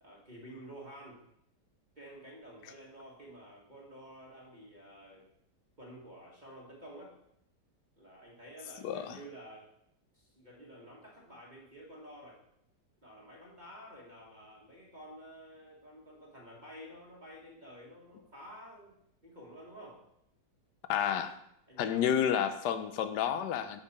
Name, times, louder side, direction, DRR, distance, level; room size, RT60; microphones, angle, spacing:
voice 1, 0.0-1.2 1.9-5.3 5.8-7.1 8.0-9.7 10.1-12.4 13.0-20.1 21.7-22.1, equal, 30° right, -4 dB, 1.3 m, -51 dB
voice 2, 8.8-9.2 20.9-21.3 21.8-23.8, left 9 dB, 75° left, 10 dB, 1.2 m, -30 dB
6.6 x 6.0 x 4.1 m, 0.75 s
omnidirectional pair, 1.9 m